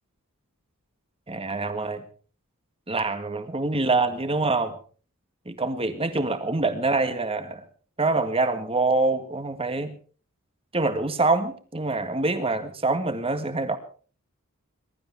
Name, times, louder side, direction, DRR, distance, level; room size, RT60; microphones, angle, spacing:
voice 1, 1.3-2.0 2.9-4.8 5.5-7.6 8.0-10.0 10.7-13.8, right 3 dB, 25° right, 9 dB, 1.9 m, -25 dB
22.0 x 13.0 x 4.7 m, 0.41 s
head